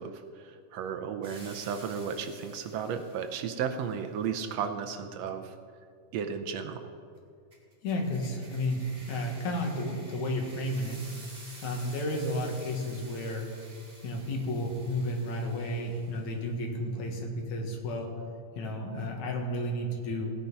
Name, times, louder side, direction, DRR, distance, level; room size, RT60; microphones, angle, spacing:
voice 1, 0.0-5.5 6.1-6.8, right 7 dB, 70° right, 7 dB, 1.8 m, -34 dB
sound 1, 1.2-3.6 7.5-16.4, right 2 dB, 20° right, 2.3 m, -52 dB
voice 2, 7.8-11.0 11.6-13.5 14.0-18.1 18.6-20.3, left 1 dB, 75° left, 1 dB, 3.1 m, -32 dB
17.5 x 8.9 x 5.5 m, 2.2 s
omnidirectional pair, 3.3 m